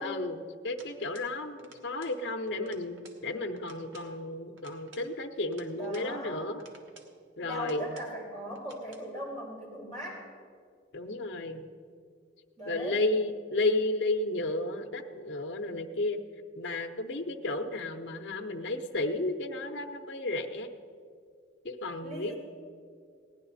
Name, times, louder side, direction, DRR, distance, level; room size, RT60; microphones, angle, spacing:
voice 1, 0.0-6.6 7.4-7.9 10.9-11.7 12.6-16.2 16.6-20.7 21.6-22.3, left 2 dB, 65° left, 3 dB, 0.7 m, -33 dB
sound 1, 0.8-1.3 1.6-2.2 2.5-3.2 3.6-4.1 4.6-6.1 6.6-7.1 7.5-8.1 8.5-9.1, right 3 dB, 85° right, 1.3 m, -55 dB
voice 2, 5.7-6.5 7.4-10.2 12.6-13.0 22.0-22.4, equal, 40° right, -5 dB, 3.6 m, -39 dB
17.0 x 10.5 x 4.0 m, 2.2 s
head